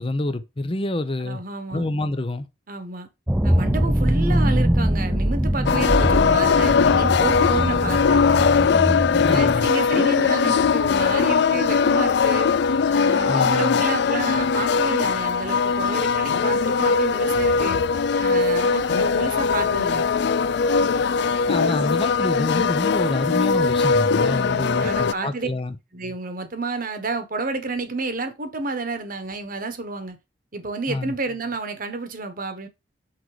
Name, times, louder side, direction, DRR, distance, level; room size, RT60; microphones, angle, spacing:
voice 1, 0.0-1.4 1.7-2.5 9.2-9.7 13.3-13.8 21.5-25.8 30.9-31.2, left 2 dB, 30° left, 0.7 m, -27 dB
voice 2, 1.2-1.9 2.7-3.1 3.4-8.4 9.3-12.5 12.8-17.8 18.2-20.0 24.2-25.5 25.9-30.2 30.5-32.7, right 3 dB, 50° right, 1.3 m, -30 dB
sound 1, 3.3-9.7, equal, 10° right, 0.5 m, -22 dB
sound 2, 5.7-25.1, left 5 dB, 65° left, 0.4 m, -20 dB
5.9 x 4.6 x 4.9 m
head